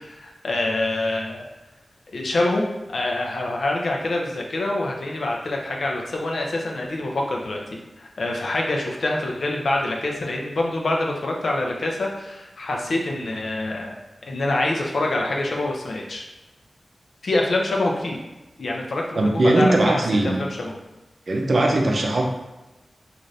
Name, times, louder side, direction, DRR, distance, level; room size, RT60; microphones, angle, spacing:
voice 1, 0.0-1.5 2.1-2.6 2.9-7.6 8.0-14.0 14.3-16.3 17.2-18.2 18.6-20.0 20.4-20.8, left 2 dB, 75° left, 0 dB, 0.5 m, -25 dB
voice 2, 19.1-20.4 21.3-22.2, right 2 dB, 65° right, 1 dB, 0.5 m, -19 dB
2.6 x 2.5 x 3.2 m, 1.0 s
wide cardioid pair, 85°, 0 cm